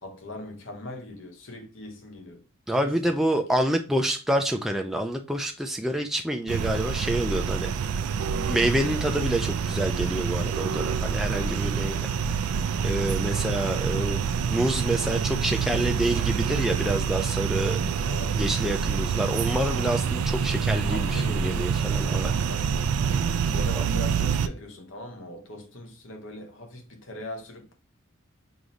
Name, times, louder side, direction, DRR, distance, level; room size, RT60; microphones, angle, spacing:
voice 1, 0.0-2.4 2.8-3.4 11.3-11.7 18.0-18.4 20.9-22.9 23.5-27.7, left 1 dB, 60° left, 0.8 m, -41 dB
voice 2, 2.7-7.7 8.5-12.1 12.8-17.8 18.3-22.3, right 1 dB, ahead, 0.3 m, -27 dB
sound 1, 6.5-24.5, right 6 dB, 90° right, 0.3 m, -27 dB
4.9 x 2.6 x 3.0 m
head